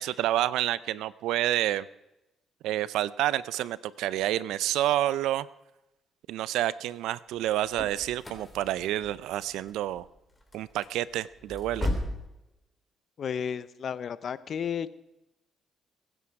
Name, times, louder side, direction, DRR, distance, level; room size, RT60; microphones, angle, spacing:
voice 1, 0.0-1.9 2.6-5.5 6.3-10.1 10.5-11.9, right 13 dB, 90° right, 19 dB, 0.5 m, -29 dB
sound 1, 7.3-12.3, left 1 dB, 15° left, 3.7 m, -37 dB
voice 2, 13.2-14.9, left 7 dB, 55° left, 16 dB, 0.7 m, -32 dB
22.5 x 9.9 x 4.8 m, 0.94 s
cardioid pair, 90°, 0 cm